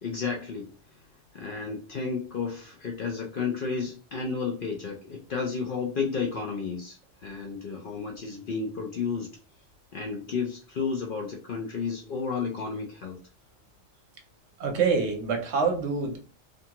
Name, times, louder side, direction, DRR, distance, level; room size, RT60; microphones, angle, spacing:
voice 1, 0.0-0.7 1.3-9.3 9.9-13.2, left 5 dB, 60° left, 0.6 m, -32 dB
voice 2, 14.6-16.2, right 5 dB, 65° right, 0.9 m, -26 dB
2.6 x 2.3 x 2.8 m
omnidirectional pair, 1.3 m